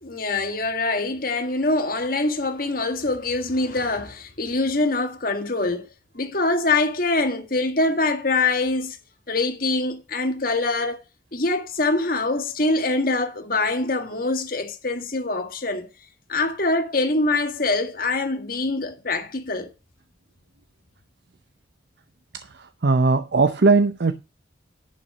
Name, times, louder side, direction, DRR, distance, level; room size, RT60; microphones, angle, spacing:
voice 1, 0.0-5.9 6.1-9.0 9.3-11.0 11.3-15.9 16.3-19.7, left 2 dB, 50° left, 1.7 m, -24 dB
voice 2, 22.8-24.1, right 3 dB, 65° right, 0.6 m, -18 dB
11.0 x 6.0 x 6.6 m
head